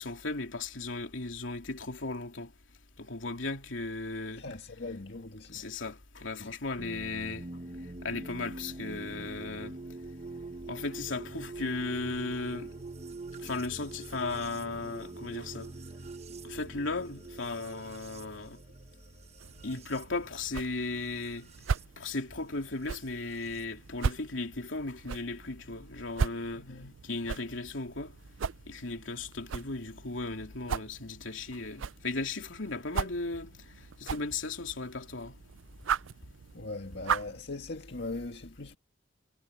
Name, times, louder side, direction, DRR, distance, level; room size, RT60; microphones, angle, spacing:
voice 1, 0.0-2.5 3.0-4.5 5.5-7.5 8.0-9.8 10.7-12.7 13.4-15.7 16.4-18.6 19.6-21.5 22.0-26.7 27.0-28.1 28.7-33.5 34.0-35.3, left 3 dB, 80° left, 2.9 m, -36 dB
voice 2, 4.4-5.7 6.4-6.5 26.6-26.9 36.5-38.7, left 2 dB, 60° left, 1.9 m, -40 dB
sound 1, 6.8-21.9 23.0-23.6, right 2 dB, 35° right, 0.9 m, -45 dB
sound 2, 19.4-37.4, right 6 dB, 85° right, 0.5 m, -38 dB
head